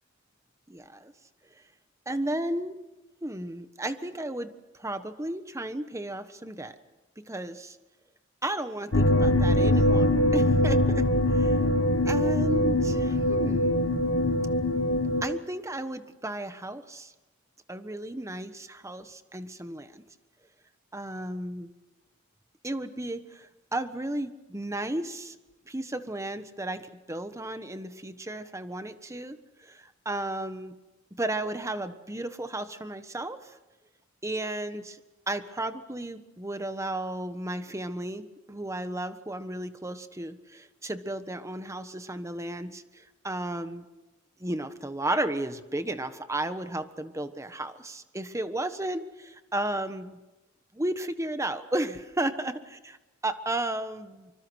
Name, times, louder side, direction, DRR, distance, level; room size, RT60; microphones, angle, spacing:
voice 1, 0.7-1.1 2.1-2.7 3.2-4.5 4.8-6.7 7.3-7.8 8.4-11.0 11.3-11.6 12.0-13.8 15.2-17.1 17.7-20.0 20.9-21.7 22.6-25.4 25.7-29.4 29.6-30.7 31.2-33.6 34.2-35.0 35.3-43.9 44.4-50.2 50.7-52.5 53.2-54.3, right 1 dB, 15° right, 10 dB, 1.3 m, -33 dB
sound 1, 8.9-15.2, left 1 dB, 70° left, 1.6 m, -23 dB
25.5 x 24.5 x 6.4 m, 1.1 s
head